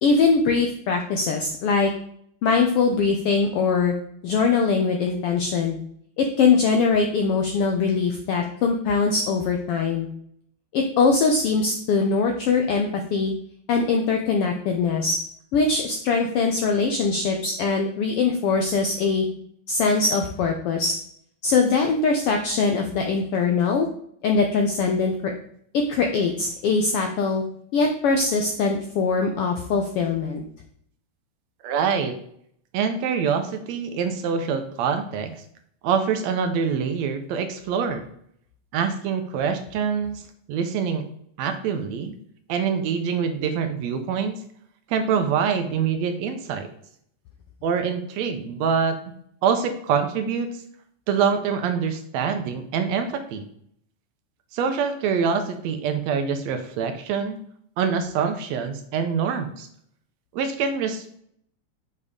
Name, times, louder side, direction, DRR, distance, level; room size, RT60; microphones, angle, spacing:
voice 1, 0.0-1.9 2.4-3.9 4.2-5.8 6.2-10.1 10.7-13.3 13.7-15.2 15.5-19.3 19.7-20.9 21.4-23.9 24.2-25.3 25.7-27.4 27.7-30.4, left 4 dB, 80° left, 3 dB, 1.3 m, -22 dB
voice 2, 31.6-32.2 32.7-35.3 35.8-38.0 38.7-40.2 40.5-41.1 41.4-42.2 42.5-44.4 44.9-46.7 47.6-49.0 49.4-50.5 51.1-53.5 54.5-57.4 57.8-59.7 60.3-61.2, right 6 dB, 75° right, 7 dB, 1.8 m, -25 dB
6.7 x 5.3 x 3.6 m, 0.67 s
omnidirectional pair, 3.4 m